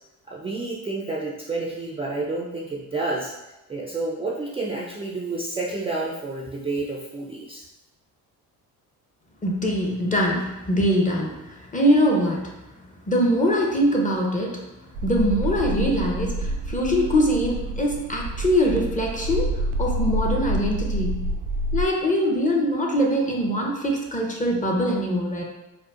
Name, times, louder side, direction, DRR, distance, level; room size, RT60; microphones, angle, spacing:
voice 1, 0.3-3.3 3.7-7.6, right 3 dB, 15° right, -3 dB, 0.4 m, -29 dB
voice 2, 9.4-21.2 21.7-25.4, equal, 20° left, 0 dB, 0.7 m, -23 dB
sound 1, 14.9-21.8, right 1 dB, 75° right, 0.5 m, -27 dB
4.3 x 2.1 x 2.4 m, 1.0 s
supercardioid pair, 70°, 40 cm